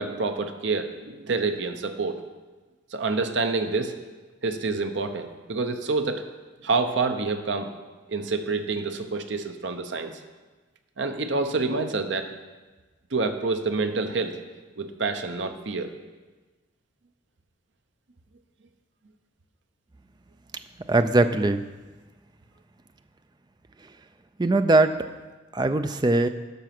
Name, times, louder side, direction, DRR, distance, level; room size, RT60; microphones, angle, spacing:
voice 1, 0.0-2.2 2.9-4.0 4.4-6.2 6.6-7.7 8.1-10.2 11.0-12.3 13.1-14.4 14.8-15.9, right 3 dB, 65° right, 7 dB, 0.8 m, -27 dB
voice 2, 20.9-21.6 24.4-25.0 25.5-26.3, right 2 dB, 20° right, 9 dB, 0.4 m, -20 dB
12.0 x 6.2 x 6.0 m, 1.3 s
head